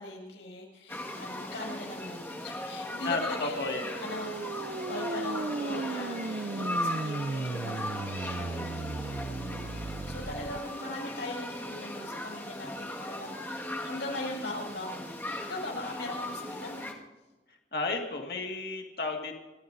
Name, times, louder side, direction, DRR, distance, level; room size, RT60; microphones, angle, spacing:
voice 1, 0.0-4.5 4.9-16.9, left 1 dB, 90° left, -1 dB, 6.4 m, -40 dB
sound 1, 0.9-16.9, left 1 dB, 10° left, 1.7 m, -38 dB
voice 2, 3.0-3.9 17.7-19.4, left 3 dB, 55° left, 2 dB, 1.9 m, -33 dB
sound 2, 3.5-10.6, right 3 dB, 50° right, 0.4 m, -36 dB
30.0 x 13.5 x 2.6 m, 1.2 s
head